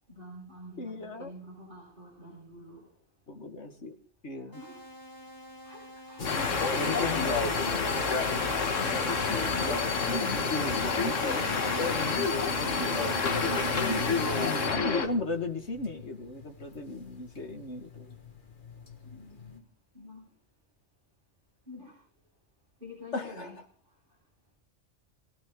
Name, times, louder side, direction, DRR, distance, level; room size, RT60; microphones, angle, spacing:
voice 1, 0.1-2.9 4.5-4.9 5.6-8.2 9.3-10.0 14.5-14.8 19.0-19.7 19.9-20.3 21.7-22.0 22.8-23.6, left 1 dB, 40° right, -5 dB, 6.8 m, -44 dB
voice 2, 0.8-1.3 3.3-4.0 4.2-4.6 6.3-7.4 9.8-11.2 11.7-13.0 14.3-18.1 23.1-23.5, left 2 dB, 65° left, 6 dB, 2.2 m, -36 dB
sound 1, 4.5-13.5, equal, 15° right, 7.1 m, -48 dB
sound 2, 6.2-15.1, left 4 dB, 80° left, 1.9 m, -29 dB
sound 3, 6.2-19.6, left 3 dB, 40° left, 1.8 m, -36 dB
22.5 x 16.5 x 3.9 m, 0.41 s
omnidirectional pair, 1.3 m